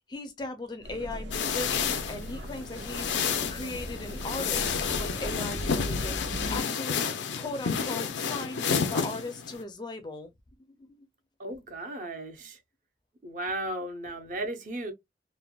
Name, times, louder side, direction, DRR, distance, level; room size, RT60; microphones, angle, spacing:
voice 1, 0.1-1.7 2.1-3.2 3.5-7.1 7.4-10.3 10.8-11.1, left 2 dB, 25° left, 0.4 m, -38 dB
sound 1, 0.8-6.6, equal, 80° right, 0.7 m, -38 dB
sound 2, 1.3-9.6, left 6 dB, 85° left, 0.5 m, -30 dB
voice 2, 11.4-12.6 13.2-14.9, right 1 dB, 45° right, 0.6 m, -35 dB
3.3 x 2.1 x 2.2 m
head